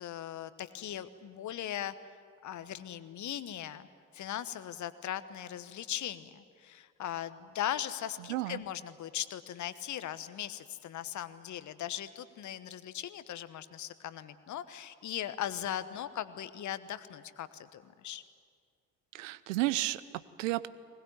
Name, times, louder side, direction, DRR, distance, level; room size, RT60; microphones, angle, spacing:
voice 1, 0.0-1.9 2.4-3.9 4.1-18.2, left 11 dB, 50° left, 14 dB, 1.2 m, -39 dB
voice 2, 8.3-8.6 19.1-20.7, right 17 dB, 75° right, 17 dB, 0.8 m, -32 dB
20.5 x 20.5 x 9.6 m, 2.2 s
figure-of-eight pair, 50°, 39 cm